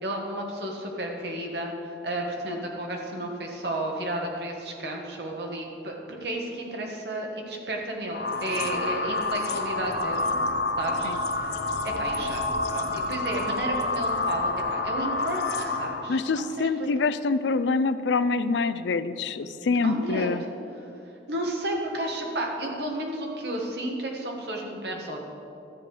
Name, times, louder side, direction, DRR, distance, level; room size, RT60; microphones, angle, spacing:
voice 1, 0.0-1.7 2.0-10.3 10.8-11.6 11.8-17.1 19.4-20.3 21.3-25.2, right 1 dB, 70° right, 0 dB, 1.6 m, -32 dB
sound 1, 8.1-16.1, left 2 dB, 70° left, 0.9 m, -28 dB
voice 2, 16.1-20.4, left 4 dB, 90° left, 14 dB, 0.4 m, -25 dB
12.5 x 8.4 x 5.0 m, 2.7 s
head